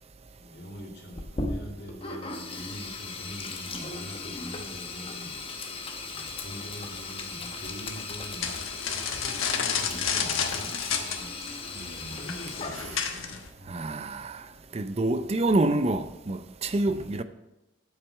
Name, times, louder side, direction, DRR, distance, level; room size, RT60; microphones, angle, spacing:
voice 1, 0.4-5.5 6.1-8.5 9.0-11.4 12.0-13.9 15.2-15.4 16.9-17.1, equal, 55° left, 2.4 m, -44 dB
Sink (filling or washing), 1.1-13.2, left 3 dB, 25° left, 0.9 m, -37 dB
sound 1, 8.4-13.5, left 7 dB, 80° left, 1.1 m, -31 dB
voice 2, 13.7-14.4 14.7-17.2, right 2 dB, 30° right, 0.5 m, -27 dB
10.0 x 7.5 x 4.6 m
head